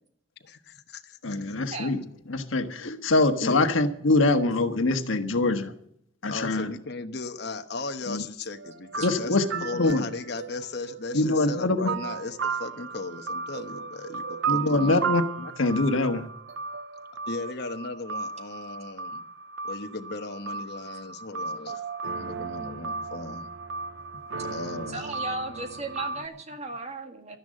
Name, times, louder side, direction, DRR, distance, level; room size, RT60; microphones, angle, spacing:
voice 1, 0.5-1.4 2.8-3.0 3.4-3.6 6.2-9.4 9.6-15.1 17.3-19.2 19.6-21.8 22.2-23.5 24.4-25.0, left 3 dB, 55° left, 7 dB, 1.1 m, -36 dB
voice 2, 1.2-2.0 2.3-5.7 6.2-6.7 8.1-8.2 9.0-10.0 11.1-11.9 14.5-16.2, left 2 dB, 80° left, 8 dB, 1.4 m, -24 dB
sound 1, 8.5-26.3, right 5 dB, 70° right, 0.6 m, -35 dB
voice 3, 24.9-27.4, right 2 dB, 35° right, 6 dB, 1.8 m, -35 dB
12.5 x 10.5 x 7.6 m, 0.69 s
head